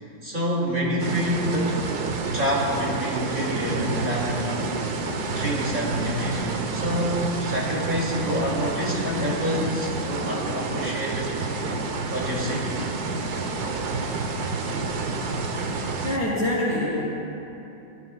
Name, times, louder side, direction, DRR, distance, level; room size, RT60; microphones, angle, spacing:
voice 1, 0.2-1.9 2.3-4.7 5.2-6.5 6.7-11.3 12.1-12.7, equal, 35° right, -4 dB, 2.8 m, -27 dB
sound 1, 1.0-16.2, right 3 dB, 80° right, 1.5 m, -29 dB
voice 2, 16.0-17.0, left 1 dB, 45° left, -9 dB, 3.0 m, -25 dB
25.0 x 16.5 x 2.4 m, 2.9 s
omnidirectional pair, 1.7 m